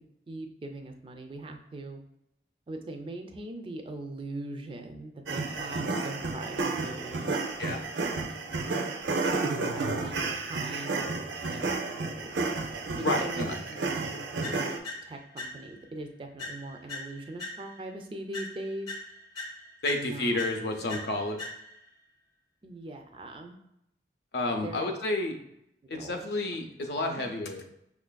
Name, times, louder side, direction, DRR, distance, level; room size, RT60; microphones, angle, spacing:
voice 1, 0.3-2.0 2.7-7.3 9.7-11.2 11.5-12.3 12.9-14.8 15.1-18.9 19.9-20.4 22.6-23.6 24.6-24.9 25.9-26.2 27.2-27.3, right 2 dB, 30° right, 4 dB, 0.3 m, -41 dB
sound 1, 5.3-14.8, right 3 dB, 90° right, 0.5 m, -31 dB
voice 2, 13.0-13.5 19.8-21.4 24.3-25.4 25.9-27.6, left 2 dB, 65° left, 4 dB, 0.5 m, -30 dB
sound 2, 14.4-15.9 16.4-17.9 18.3-21.9, left 2 dB, 20° left, 0.6 m, -42 dB
5.6 x 2.4 x 2.2 m, 0.81 s
head